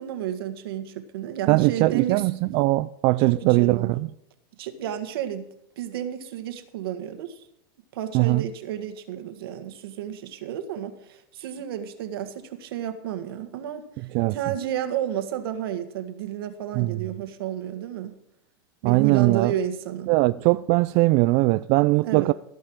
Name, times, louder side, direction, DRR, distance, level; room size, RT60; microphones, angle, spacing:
voice 1, 0.0-2.3 3.3-4.0 4.6-5.4 5.8-7.4 7.9-18.1 18.8-20.1 22.0-22.3, right 10 dB, 70° right, 1.6 m, -31 dB
voice 2, 1.5-4.1 8.1-8.4 14.1-14.4 16.8-17.0 18.8-19.5 20.1-22.3, right 21 dB, 45° right, 0.3 m, -20 dB
15.5 x 5.5 x 8.7 m
supercardioid pair, 130°, 13 cm